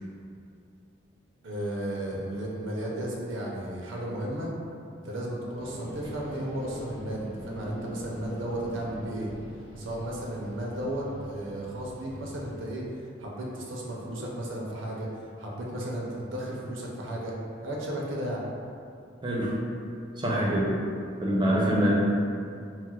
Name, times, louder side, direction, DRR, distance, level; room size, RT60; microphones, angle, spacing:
voice 1, 1.4-4.5 5.0-9.3 9.8-12.8 13.2-15.1 15.4-17.3 17.6-18.4, right 1 dB, 75° right, -3 dB, 0.5 m, -34 dB
sound 1, 5.6-12.6, equal, 85° left, 0.7 m, -42 dB
voice 2, 19.2-19.6 20.2-20.7 21.2-21.9, equal, 25° right, -5 dB, 0.4 m, -25 dB
4.2 x 2.0 x 2.3 m, 2.5 s
head